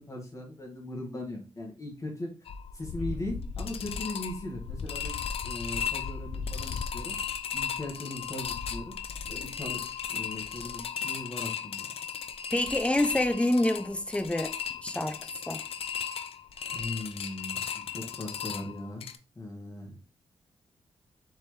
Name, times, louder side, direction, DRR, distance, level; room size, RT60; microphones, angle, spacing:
voice 1, 0.0-2.3 2.7-7.2 7.5-9.0 9.3-9.8 10.1-11.9 16.7-19.0 19.3-20.0, left 1 dB, 30° left, 1.6 m, -39 dB
sound 1, 2.4-19.2, left 7 dB, 65° left, 0.5 m, -36 dB
voice 2, 12.5-14.5 14.8-15.2 15.5-15.6, left 1 dB, 10° left, 0.6 m, -27 dB
4.1 x 3.7 x 3.2 m
cardioid pair, 60°, 10 cm